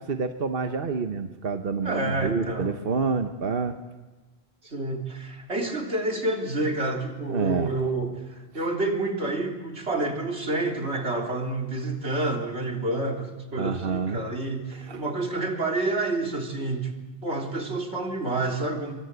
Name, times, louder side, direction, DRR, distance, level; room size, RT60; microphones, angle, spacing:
voice 1, 0.0-3.8 7.3-7.7 13.6-14.2 14.8-15.0, right 5 dB, 60° right, 7 dB, 1.3 m, -28 dB
voice 2, 1.8-2.7 4.6-16.9 17.2-18.9, right 2 dB, 90° right, 1 dB, 3.7 m, -29 dB
27.0 x 23.5 x 8.2 m, 1.2 s
omnidirectional pair, 1.1 m